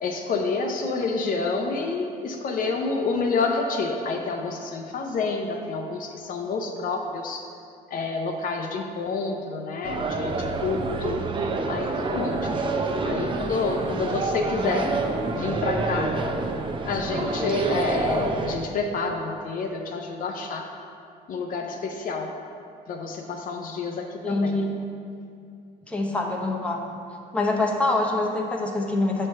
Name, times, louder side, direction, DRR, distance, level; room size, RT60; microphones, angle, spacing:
voice 1, 0.0-7.4 7.9-11.2 11.7-14.9 15.3-16.1 16.8-20.7 21.3-22.3 22.9-24.6, left 4 dB, 55° left, 3 dB, 0.6 m, -28 dB
sound 1, 9.8-18.6, right 3 dB, 30° right, 0.5 m, -27 dB
voice 2, 24.2-24.7 25.9-26.8 27.3-29.3, left 2 dB, 5° left, 0 dB, 0.8 m, -25 dB
7.4 x 3.3 x 5.5 m, 2.4 s
cardioid pair, 110°, 17 cm